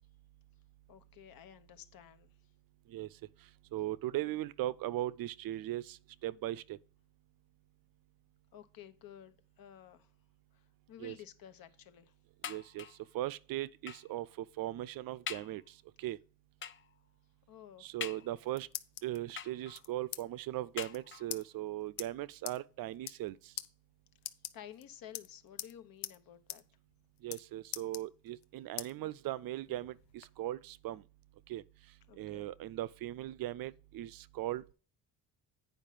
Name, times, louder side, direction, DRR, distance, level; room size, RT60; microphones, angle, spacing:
voice 1, 0.9-2.3 8.5-10.1 10.9-12.1 17.5-17.9 24.5-26.6 32.1-32.5, left 10 dB, 60° left, 1.1 m, -53 dB
voice 2, 3.7-6.8 11.0-11.1 12.5-12.9 13.1-15.6 16.0-16.2 17.8-18.7 19.0-23.5 27.2-31.0 31.5-31.6 32.2-34.7, right 14 dB, 60° right, 0.5 m, -39 dB
sound 1, 12.4-13.1 13.9-14.2 14.7-14.8 15.3-15.6 16.6-17.0 18.0-18.6 19.4-20.0 20.8-21.4 22.3-22.4 22.7-22.8, left 8 dB, 30° left, 0.6 m, -44 dB
sound 2, 18.2-19.2 19.7-20.2 20.5-20.6 20.8-21.0 21.3-21.4 22.0-22.1 22.5-22.6 22.9-23.3 23.6-23.7 24.2-24.8 25.1-25.7 26.0-26.2 26.5-26.6 26.9-27.4 27.7-28.4 28.8-28.9 29.4-30.3, left 13 dB, 85° left, 0.8 m, -42 dB
9.1 x 5.3 x 5.0 m
cardioid pair, 150°, 39 cm